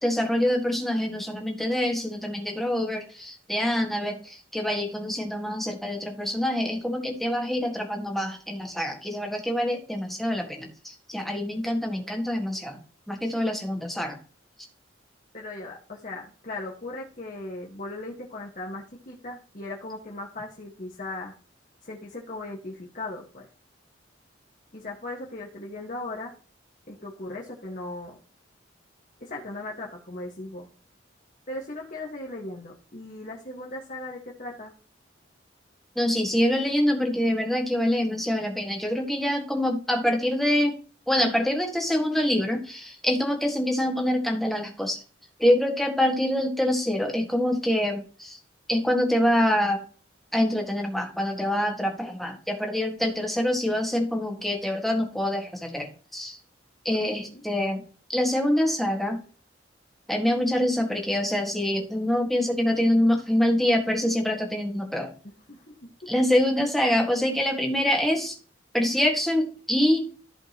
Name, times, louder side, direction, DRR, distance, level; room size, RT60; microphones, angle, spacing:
voice 1, 0.0-12.8 13.1-14.2 35.9-40.8 41.1-45.0 45.4-48.4 48.7-49.8 50.3-56.4 56.8-57.8 58.1-59.2 60.1-65.1 66.1-68.4 68.7-70.1, left 1 dB, ahead, 1 dB, 1.7 m, -25 dB
voice 2, 15.3-21.3 21.8-23.5 24.7-26.3 26.9-28.2 29.2-30.7 31.5-34.7 57.1-57.4 65.5-65.6, left 2 dB, 45° left, -2 dB, 1.5 m, -38 dB
14.5 x 5.2 x 2.9 m, 0.39 s
head